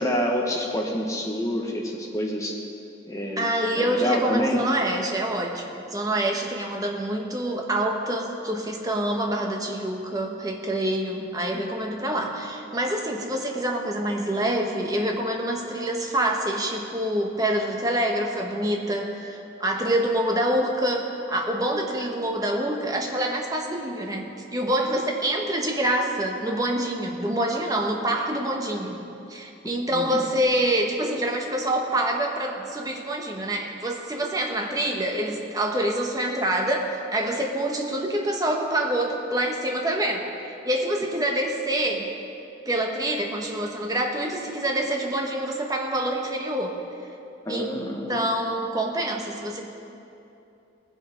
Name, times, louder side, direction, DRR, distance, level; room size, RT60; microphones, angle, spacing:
voice 1, 0.0-2.6 3.1-3.5 3.8-4.6 29.9-30.3 47.4-48.2, left 1 dB, 15° left, 0 dB, 1.3 m, -27 dB
voice 2, 3.4-29.0 29.3-42.1 42.7-46.8 47.5-47.8 48.1-49.6, right 1 dB, 20° right, 1 dB, 1.2 m, -26 dB
19.0 x 7.9 x 5.2 m, 2.8 s
head